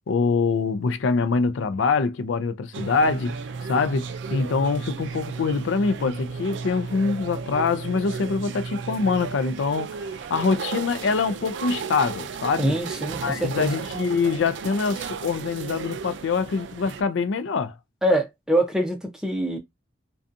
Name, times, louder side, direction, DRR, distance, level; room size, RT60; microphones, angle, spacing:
voice 1, 0.1-3.3 3.7-10.0 10.3-12.7 13.2-17.7, left 4 dB, 80° left, 0.4 m, -24 dB
sound 1, 2.7-17.0, right 5 dB, 70° right, 0.3 m, -34 dB
voice 2, 12.6-13.7 18.0-19.6, right 1 dB, 5° right, 0.5 m, -24 dB
2.6 x 2.3 x 2.5 m
head